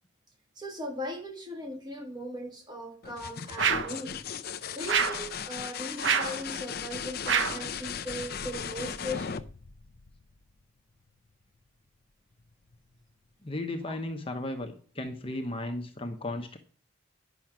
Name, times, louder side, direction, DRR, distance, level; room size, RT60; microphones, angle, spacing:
voice 1, 0.5-4.2 4.7-9.5 13.8-14.0 15.6-15.7, left 1 dB, 20° right, 1.6 m, -39 dB
sound 1, 3.0-10.6 12.4-13.0, left 7 dB, 45° left, 0.6 m, -37 dB
sound 2, 3.6-4.0 4.9-5.3 6.0-6.4 7.3-7.7, right 6 dB, 60° right, 1.0 m, -26 dB
voice 2, 13.4-16.6, left 1 dB, 25° left, 0.9 m, -35 dB
10.5 x 6.2 x 6.0 m
head